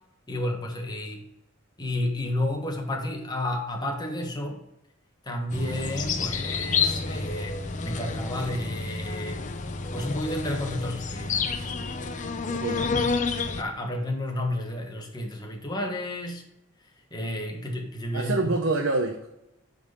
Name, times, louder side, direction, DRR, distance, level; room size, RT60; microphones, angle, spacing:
voice 1, 0.3-1.2 1.8-4.6 5.2-9.4 9.9-11.7 12.9-13.1 13.6-16.4 17.1-18.5, left 1 dB, 20° left, 2 dB, 1.3 m, -31 dB
sound 1, 5.5-13.6, left 4 dB, 40° left, 0.6 m, -29 dB
voice 2, 12.5-12.9 18.1-19.3, right 3 dB, 70° right, 1 dB, 0.9 m, -26 dB
8.5 x 4.1 x 5.4 m, 0.85 s
head